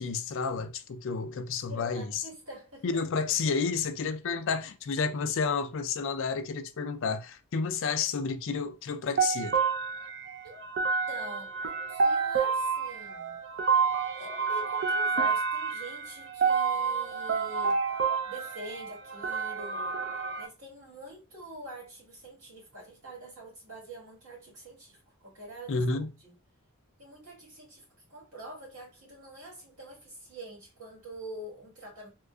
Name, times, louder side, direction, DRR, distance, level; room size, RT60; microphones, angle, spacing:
voice 1, 0.0-2.1 2.8-9.5 25.7-26.1, left 5 dB, 60° left, 0.4 m, -30 dB
voice 2, 1.7-3.0 10.4-10.7 11.1-13.4 14.1-17.8 18.2-20.0 20.4-26.4 27.0-32.1, right 1 dB, 85° right, 1.9 m, -45 dB
sound 1, 9.2-20.5, right 5 dB, 50° right, 0.4 m, -29 dB
3.7 x 2.4 x 2.3 m
head